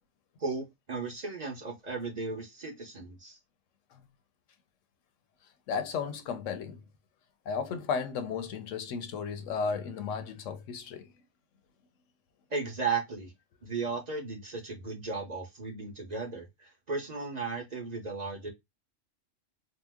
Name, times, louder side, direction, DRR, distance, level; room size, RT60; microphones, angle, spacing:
voice 1, 0.4-3.4 12.5-13.3 13.6-18.5, right 4 dB, 35° right, 0.8 m, -35 dB
voice 2, 5.7-6.8 7.5-11.1, left 6 dB, 80° left, 0.9 m, -34 dB
2.9 x 2.0 x 3.4 m
omnidirectional pair, 1.3 m